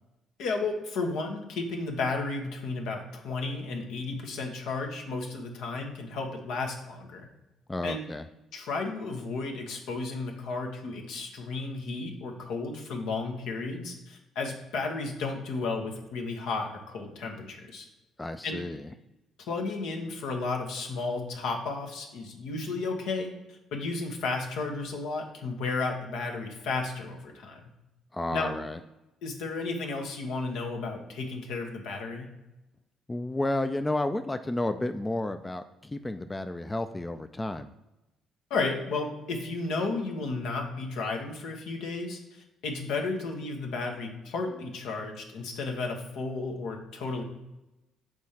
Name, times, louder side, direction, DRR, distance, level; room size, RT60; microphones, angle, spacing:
voice 1, 0.4-7.3 7.8-8.0 8.5-17.9 18.4-18.6 19.5-27.6 28.3-28.5 29.2-32.3 38.5-47.2, left 3 dB, 75° left, 2 dB, 1.0 m, -33 dB
voice 2, 7.7-8.2 18.2-18.9 28.1-28.8 33.1-37.7, left 2 dB, 20° left, 9 dB, 0.4 m, -31 dB
6.2 x 3.8 x 4.2 m, 0.97 s
supercardioid pair, 60°, 0 cm